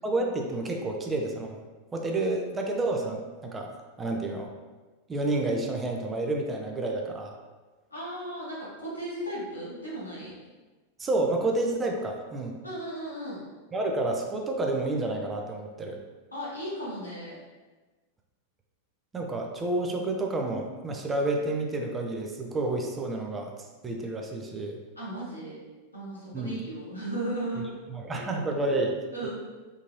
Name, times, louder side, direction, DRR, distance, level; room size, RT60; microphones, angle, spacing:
voice 1, 0.0-1.6 1.9-3.7 4.0-4.5 5.1-7.4 11.0-12.6 13.7-16.0 19.1-23.5 23.8-24.8 26.3-26.6 27.9-29.0 29.2-29.3, right 2 dB, 15° right, 2 dB, 0.4 m, -29 dB
voice 2, 7.9-10.4 12.6-13.4 16.3-17.4 25.0-25.6 25.9-27.8 28.1-28.6 29.1-29.3, right 1 dB, 85° left, -8 dB, 1.3 m, -36 dB
3.8 x 2.8 x 2.6 m, 1.3 s
figure-of-eight pair, 90°, 0 cm